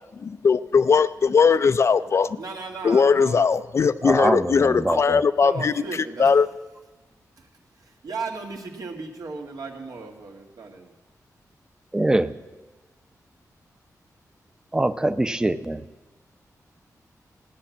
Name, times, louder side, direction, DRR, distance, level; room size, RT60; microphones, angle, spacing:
voice 1, 0.2-2.4 2.8-6.5, left 5 dB, 45° left, 0.4 m, -20 dB
voice 2, 2.4-3.5 5.4-6.3 7.8-10.9, right 4 dB, 80° right, 2.1 m, -36 dB
voice 3, 4.0-5.2 11.9-12.3 14.7-15.8, right 1 dB, 10° right, 0.6 m, -23 dB
16.0 x 10.0 x 7.2 m
wide cardioid pair, 160°, 6 cm